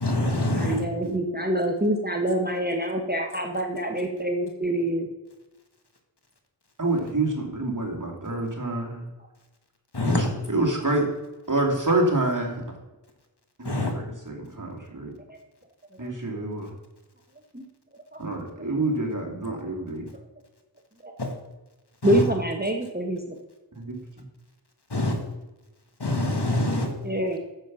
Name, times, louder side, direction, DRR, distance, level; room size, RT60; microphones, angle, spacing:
voice 1, 0.0-0.8 9.9-10.2 13.7-13.9 21.2-21.3 24.9-25.2 26.0-26.9, left 1 dB, 65° left, 4 dB, 1.9 m, -24 dB
voice 2, 0.6-5.1 15.3-15.4 16.0-16.1 17.5-17.6 18.1-18.2 21.0-21.1 22.0-23.4 24.9-25.1 26.7-27.4, right 1 dB, 20° right, 2 dB, 1.2 m, -26 dB
voice 3, 6.8-9.1 10.0-11.1 11.5-12.6 13.6-15.1 16.0-16.7 18.2-20.1 23.7-24.0, right 2 dB, 45° right, 0 dB, 2.6 m, -27 dB
9.6 x 7.3 x 6.1 m, 1.1 s
wide cardioid pair, 45°, 44 cm